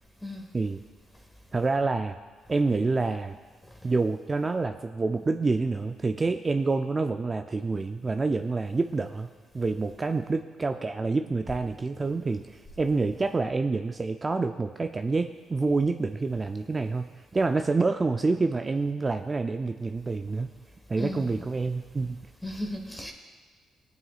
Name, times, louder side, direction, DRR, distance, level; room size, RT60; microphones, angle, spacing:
voice 1, 1.5-2.2 2.5-3.4 3.8-20.5 20.9-22.2, right 3 dB, 25° right, 7 dB, 0.4 m, -27 dB
voice 2, 21.0-21.5 22.4-23.1, left 1 dB, 10° left, 2 dB, 1.3 m, -35 dB
18.5 x 9.2 x 2.4 m, 1.4 s
cardioid pair, 90°, 0 cm